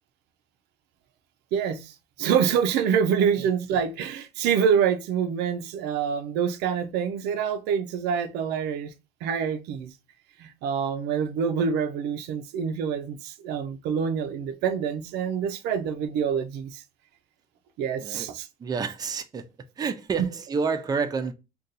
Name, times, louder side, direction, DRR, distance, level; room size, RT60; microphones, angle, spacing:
voice 1, 1.5-8.9 9.2-9.9 10.4-16.8 17.8-18.5, right 7 dB, 85° right, 0.4 m, -26 dB
voice 2, 18.6-19.4 19.8-21.3, right 5 dB, 25° right, 0.4 m, -29 dB
2.6 x 2.2 x 3.9 m
cardioid pair, 110°, 17 cm